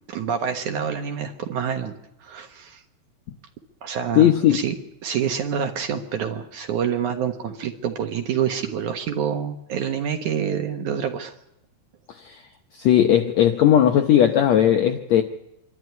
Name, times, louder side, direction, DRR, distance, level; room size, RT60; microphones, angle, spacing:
voice 1, 0.1-1.9 2.2-2.8 3.8-4.8 5.0-11.3, right 8 dB, 60° right, 4 dB, 2.4 m, -27 dB
voice 2, 4.1-4.6 12.2-12.3 12.8-15.2, left 10 dB, 75° left, 5 dB, 1.6 m, -17 dB
26.0 x 12.5 x 9.4 m, 0.85 s
omnidirectional pair, 4.4 m